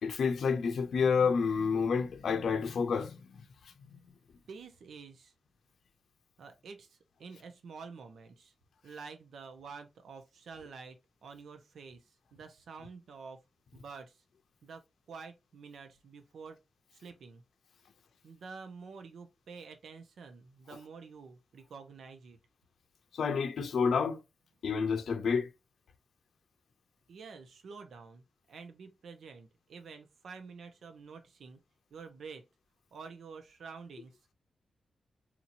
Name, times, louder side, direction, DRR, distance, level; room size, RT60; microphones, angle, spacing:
voice 1, 0.0-3.2 23.1-24.2 24.6-25.5, left 5 dB, 80° left, 0.6 m, -29 dB
voice 2, 4.5-5.3 6.4-8.5 8.8-11.0 11.2-12.0 12.3-13.4 13.7-14.2 14.6-14.8 15.1-16.6 17.0-17.4 18.2-22.4 27.1-31.6 31.9-32.4 32.9-34.1, right 5 dB, 80° right, 0.8 m, -48 dB
4.3 x 2.9 x 2.6 m
wide cardioid pair, 120°, 0 cm